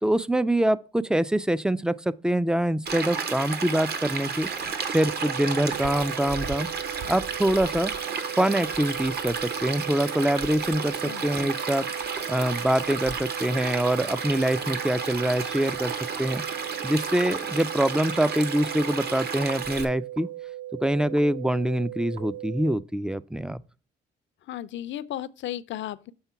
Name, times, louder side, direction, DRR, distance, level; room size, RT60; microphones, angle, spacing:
voice 1, 0.0-4.5 4.9-6.7 7.1-7.9 8.4-11.9 12.3-16.4 16.8-20.3 20.8-23.6, right 1 dB, 5° right, 0.3 m, -25 dB
Stream, 2.9-19.9, right 5 dB, 55° right, 1.1 m, -32 dB
sound 1, 4.9-22.8, right 14 dB, 70° right, 1.2 m, -38 dB
voice 2, 11.0-11.5 24.5-26.1, left 12 dB, 70° left, 0.5 m, -35 dB
7.1 x 3.7 x 5.7 m
cardioid pair, 90°, 20 cm